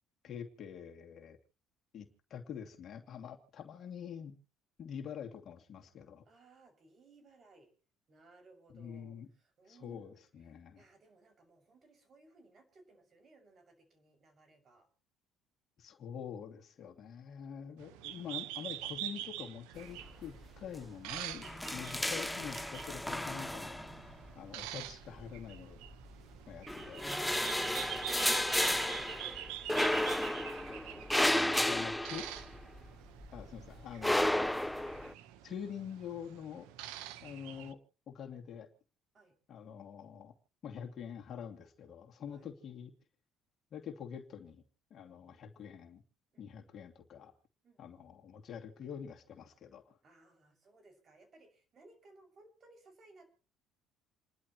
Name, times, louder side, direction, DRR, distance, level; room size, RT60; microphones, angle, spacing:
voice 1, 0.2-1.4 1.9-4.4 4.8-6.2 8.7-9.3 9.7-10.8 15.8-23.8 24.3-25.8 26.5-27.1 31.2-32.2 33.3-34.5 35.4-36.7 37.2-38.7 39.5-40.3 40.6-42.9 43.7-44.6 44.9-46.0 46.4-47.3 47.8-50.0, left 8 dB, 50° left, 3 dB, 2.7 m, -46 dB
voice 2, 6.3-7.7 8.1-10.2 10.7-14.9 17.3-17.8 24.4-24.6 28.5-30.3 36.9-37.1 39.1-39.3 42.3-42.5 45.0-45.4 46.3-46.5 47.6-48.2 50.0-53.3, right 2 dB, 40° right, 5 dB, 6.6 m, -62 dB
sound 1, 17.8-37.7, right 13 dB, 80° right, 1.1 m, -46 dB
sound 2, 19.9-20.4 20.7-20.8 21.2-24.3 25.2-26.1 26.6-32.9 33.2-35.1, left 1 dB, 5° left, 0.6 m, -33 dB
29.0 x 11.5 x 3.1 m, 0.37 s
supercardioid pair, 85°, 0 cm